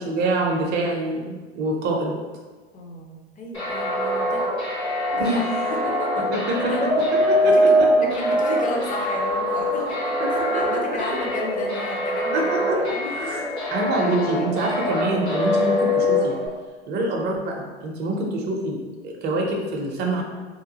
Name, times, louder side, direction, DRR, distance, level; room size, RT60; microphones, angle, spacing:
voice 1, 0.0-2.2 5.1-5.4 6.3-8.1 10.2-11.2 12.3-13.4 13.7-16.4 16.9-20.2, right 2 dB, 35° right, -1 dB, 0.6 m, -26 dB
voice 2, 2.7-4.5 5.1-6.3 6.7-6.8 7.4-13.6, left 2 dB, 25° left, 0 dB, 0.6 m, -33 dB
sound 1, 3.5-16.5, equal, 85° left, 1.4 m, -23 dB
3.0 x 2.2 x 2.7 m, 1.3 s
hypercardioid pair, 90°, 31 cm